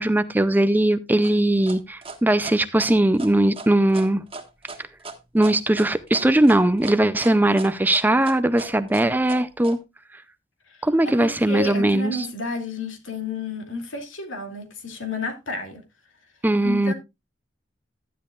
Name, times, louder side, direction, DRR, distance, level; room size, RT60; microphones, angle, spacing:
voice 1, 0.0-4.2 5.3-9.8 10.8-12.3 16.4-16.9, right 1 dB, 10° right, 0.4 m, -20 dB
sound 1, 1.2-9.8, right 3 dB, 30° right, 1.5 m, -38 dB
voice 2, 10.7-15.8 16.6-16.9, left 3 dB, 90° left, 2.5 m, -31 dB
12.5 x 10.0 x 2.4 m
head